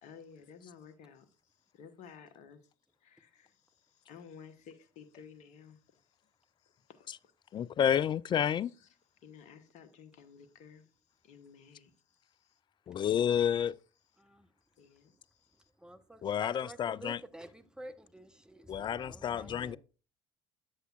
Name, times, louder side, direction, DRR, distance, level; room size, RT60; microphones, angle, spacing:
voice 1, 0.0-2.7 3.0-7.6 8.6-12.6 13.0-13.3 14.8-15.7 19.4-19.8, left 7 dB, 55° left, 1.2 m, -55 dB
voice 2, 7.5-8.7 12.9-13.7 16.2-17.2 18.7-19.8, left 9 dB, 35° left, 0.3 m, -30 dB
voice 3, 15.8-19.8, right 1 dB, 5° right, 0.9 m, -49 dB
8.0 x 7.9 x 2.4 m
hypercardioid pair, 60°, 14 cm